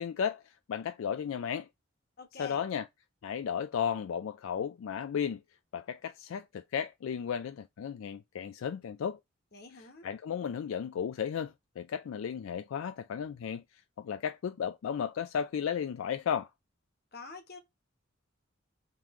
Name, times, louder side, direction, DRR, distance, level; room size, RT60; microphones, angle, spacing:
voice 1, 0.0-1.7 2.4-2.9 3.2-5.4 5.7-9.2 10.0-16.5, left 7 dB, 75° left, 0.3 m, -34 dB
voice 2, 2.2-2.6 9.5-10.1 17.1-17.6, left 4 dB, 50° left, 1.1 m, -47 dB
3.7 x 3.1 x 3.6 m
head